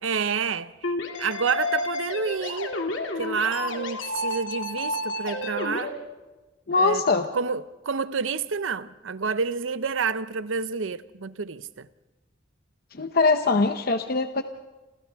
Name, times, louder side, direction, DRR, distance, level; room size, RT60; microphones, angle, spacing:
voice 1, 0.0-0.9 1.2-2.7 3.2-6.0 6.8-7.0 7.3-11.9, right 5 dB, 90° right, 0.7 m, -29 dB
sound 1, 0.8-5.9, left 2 dB, 75° left, 2.6 m, -30 dB
voice 2, 6.7-7.3 12.9-14.4, left 3 dB, 50° left, 0.8 m, -22 dB
28.5 x 27.5 x 3.5 m
head